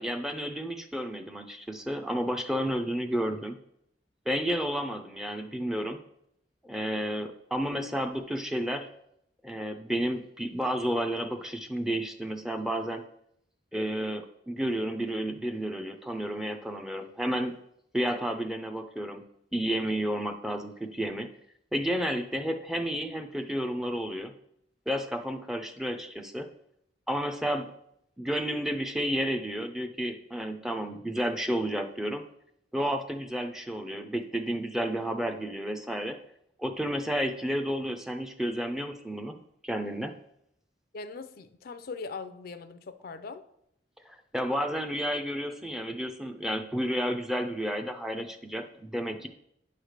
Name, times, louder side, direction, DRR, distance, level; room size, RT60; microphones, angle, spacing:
voice 1, 0.0-3.6 4.3-6.0 6.6-8.9 9.4-13.0 13.7-17.5 17.9-19.2 19.5-21.3 21.7-24.3 24.9-26.5 27.1-27.7 28.2-32.2 32.7-36.2 36.6-39.4 39.6-40.1 44.1-49.3, equal, 5° right, 6 dB, 0.5 m, -31 dB
voice 2, 40.9-43.4, left 4 dB, 55° left, 11 dB, 0.5 m, -40 dB
9.4 x 3.3 x 6.4 m, 0.76 s
head